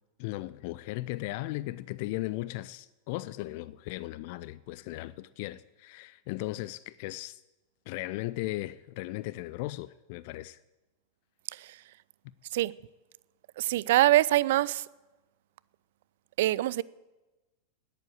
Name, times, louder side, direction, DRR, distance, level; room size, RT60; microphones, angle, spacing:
voice 1, 0.2-7.4 7.9-10.6, left 18 dB, 50° left, 0.3 m, -37 dB
voice 2, 13.6-14.8 16.4-16.8, right 15 dB, 55° right, 0.3 m, -24 dB
10.0 x 9.3 x 9.0 m
figure-of-eight pair, 90°, 0 cm